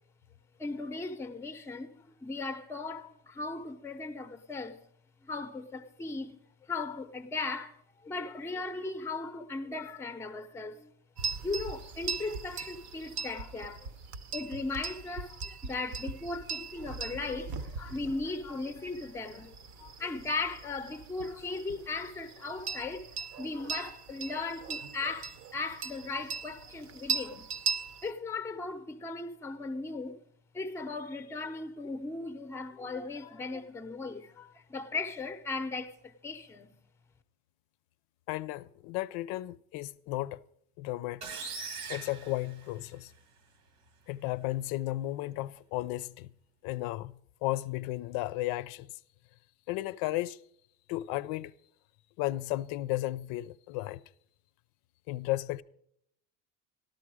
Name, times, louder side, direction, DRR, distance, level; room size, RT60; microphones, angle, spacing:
voice 1, 0.6-4.8 5.2-6.4 6.7-10.9 11.4-13.9 14.3-23.1 23.4-27.5 28.0-30.2 30.5-36.7, left 3 dB, 10° left, 0.6 m, -37 dB
sound 1, 11.2-28.1, right 5 dB, 55° right, 0.8 m, -40 dB
voice 2, 38.3-40.4 40.8-41.3 41.9-43.1 44.1-46.3 46.6-48.9 49.7-50.4 50.9-51.5 52.2-54.0 55.1-55.6, left 17 dB, 85° left, 0.5 m, -34 dB
sound 2, 41.2-43.2, right 5 dB, 90° right, 1.9 m, -41 dB
13.0 x 12.5 x 4.8 m
cardioid pair, 165°, 35 cm